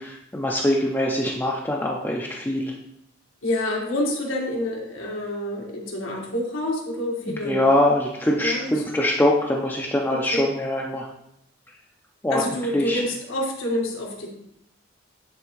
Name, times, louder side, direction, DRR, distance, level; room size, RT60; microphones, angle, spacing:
voice 1, 0.0-2.7 7.3-11.1 12.2-12.4 12.7-13.0, left 1 dB, 10° left, -2 dB, 0.5 m, -23 dB
voice 2, 3.4-7.6 8.4-8.8 10.1-10.4 12.3-14.3, left 1 dB, 85° left, -1 dB, 1.5 m, -28 dB
10.5 x 3.5 x 3.0 m, 0.79 s
head